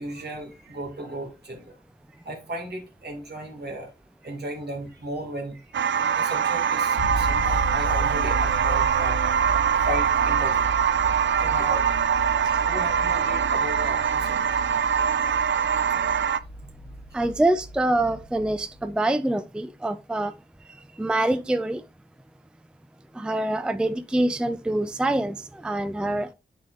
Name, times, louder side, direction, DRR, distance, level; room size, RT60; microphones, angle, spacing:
voice 1, 0.0-1.8 2.1-3.9 4.2-12.0 12.3-14.6 15.6-15.7 17.1-17.2, right 1 dB, 65° right, 2.1 m, -36 dB
sound 1, 5.7-16.4, right 7 dB, 80° right, 0.4 m, -23 dB
sound 2, 7.0-18.9, equal, 80° left, 0.9 m, -34 dB
voice 2, 17.1-20.3 21.0-21.8 23.1-26.3, right 1 dB, 5° right, 0.4 m, -25 dB
10.5 x 4.3 x 2.5 m
wide cardioid pair, 100°, 19 cm